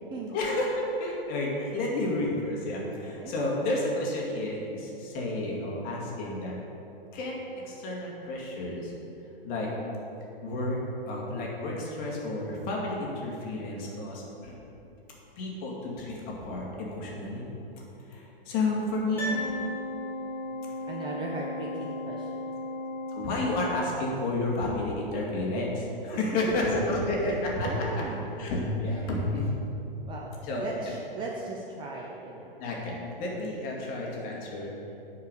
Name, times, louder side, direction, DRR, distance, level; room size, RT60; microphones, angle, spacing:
voice 1, 0.3-6.5 7.1-7.4 7.6-8.9 9.4-9.7 10.4-10.8 11.1-14.6 15.4-16.1 16.4-17.5 18.1-19.5 23.1-27.7 28.4-29.5 30.4-30.6 32.6-34.8, left 2 dB, 30° left, -2 dB, 2.1 m, -31 dB
Piano, 19.1-20.4 20.7-20.8, left 1 dB, 5° left, 2.1 m, -36 dB
Organ, 19.3-24.4, left 2 dB, 70° left, 0.9 m, -37 dB
voice 2, 20.4-22.3 27.2-28.3 28.8-29.3 30.1-32.5, right 3 dB, 15° right, -2 dB, 0.6 m, -38 dB
10.0 x 4.9 x 6.7 m, 3.0 s
hypercardioid pair, 125°, 29 cm